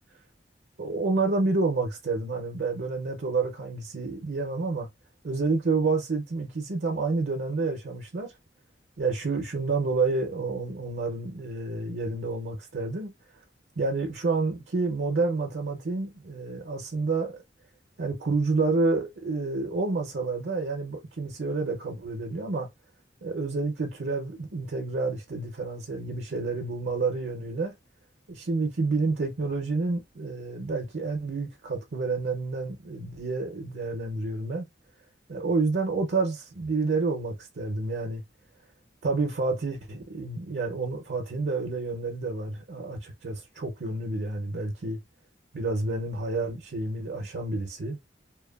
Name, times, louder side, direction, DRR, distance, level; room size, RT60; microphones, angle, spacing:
voice 1, 0.8-4.9 5.2-8.3 9.0-13.1 13.8-17.4 18.0-22.7 23.2-27.7 28.3-34.6 35.3-38.2 39.0-45.0 45.5-48.0, right 3 dB, 75° right, 0.6 m, -29 dB
2.9 x 2.2 x 2.2 m
head